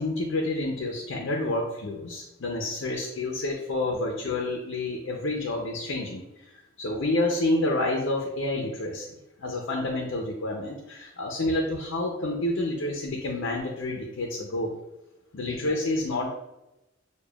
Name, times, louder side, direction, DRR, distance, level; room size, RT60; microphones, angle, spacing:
voice 1, 0.0-6.5 6.8-9.1 9.4-14.7 15.3-16.3, left 2 dB, 85° left, -1 dB, 0.6 m, -29 dB
6.7 x 2.3 x 2.3 m, 0.93 s
head